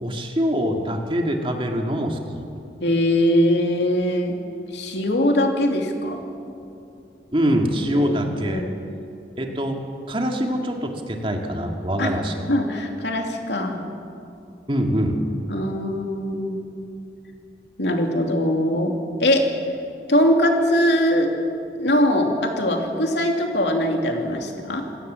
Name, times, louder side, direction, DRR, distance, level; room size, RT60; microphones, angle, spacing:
voice 1, 0.0-2.5 7.3-8.6 9.4-9.8 10.1-12.3 14.7-15.2, equal, 30° right, 3 dB, 2.1 m, -24 dB
voice 2, 2.8-4.4 4.7-6.2 7.9-9.0 12.0-12.1 12.5-13.9 15.5-16.7 17.8-18.9 19.2-19.5 20.1-21.3 21.8-24.9, left 1 dB, 80° left, 2 dB, 2.9 m, -21 dB
27.5 x 17.0 x 7.6 m, 2.6 s
head